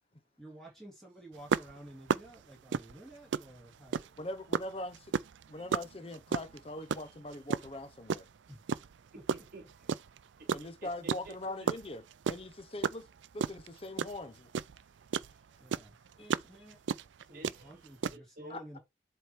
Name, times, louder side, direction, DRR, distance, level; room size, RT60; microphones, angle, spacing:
voice 1, 0.4-4.2 8.5-8.6 9.1-9.2 9.6-9.7 15.6-16.8 17.3-18.8, right 1 dB, ahead, 2.7 m, -52 dB
sound 1, 1.5-4.2 4.5-8.3 8.7-10.2 10.5-15.3 15.7-18.2, right 6 dB, 80° right, 0.4 m, -33 dB
voice 2, 4.2-5.1 5.5-8.3 10.5-13.0 13.3-14.5 16.2-16.4 18.5-18.6, left 1 dB, 30° left, 0.7 m, -42 dB
voice 3, 6.7-7.2 9.1-11.7 14.1-14.2 17.3-18.8, right 1 dB, 50° right, 1.1 m, -53 dB
7.7 x 3.2 x 4.4 m
head